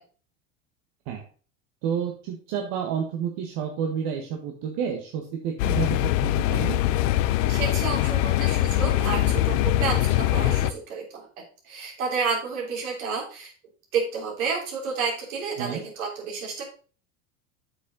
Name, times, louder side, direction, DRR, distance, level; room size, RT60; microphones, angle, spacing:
voice 1, 1.8-6.8 15.6-15.8, right 8 dB, 60° right, 2 dB, 1.6 m, -30 dB
sound 1, 5.6-10.7, left 14 dB, 65° left, 0.6 m, -23 dB
voice 2, 7.5-11.3 11.6-13.5 13.9-16.6, right 5 dB, 75° right, -2 dB, 3.5 m, -30 dB
8.1 x 5.5 x 4.0 m, 0.39 s
hypercardioid pair, 85°, 42 cm